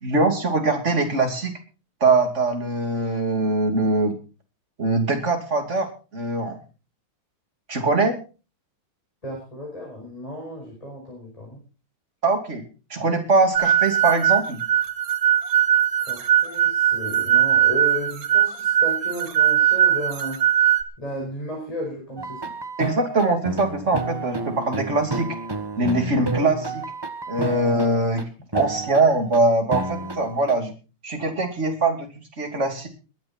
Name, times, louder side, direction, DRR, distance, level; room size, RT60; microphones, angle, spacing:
voice 1, 0.0-1.5 2.0-4.2 4.8-5.9 6.1-6.6 7.7-8.2 12.2-12.6 12.9-14.6 22.8-25.3 25.8-26.8 27.3-28.3 28.5-30.7 31.0-32.1 32.4-32.9, right 2 dB, 35° right, 4 dB, 2.9 m, -22 dB
voice 2, 9.2-11.6 16.0-20.4 21.0-22.5, equal, 15° left, -2 dB, 5.6 m, -34 dB
sound 1, 13.5-20.8, right 10 dB, 50° right, 1.5 m, -20 dB
sound 2, 22.2-28.2 28.5-29.4 29.7-30.5, right 3 dB, 15° right, 1.1 m, -31 dB
21.0 x 10.0 x 4.4 m, 0.34 s
omnidirectional pair, 2.3 m